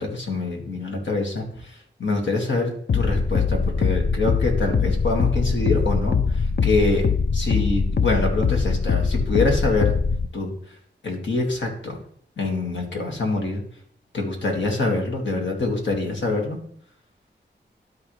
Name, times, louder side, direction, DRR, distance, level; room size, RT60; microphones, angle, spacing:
voice 1, 0.0-1.4 2.0-6.2 6.6-7.1 7.3-10.0 10.3-10.5 11.0-12.0 12.4-13.6 14.1-16.6, left 2 dB, 90° left, 1 dB, 1.8 m, -25 dB
sound 1, 2.9-10.3, left 5 dB, 65° left, 0.6 m, -22 dB
12.5 x 4.7 x 3.2 m, 0.63 s
cardioid pair, 45°, 19 cm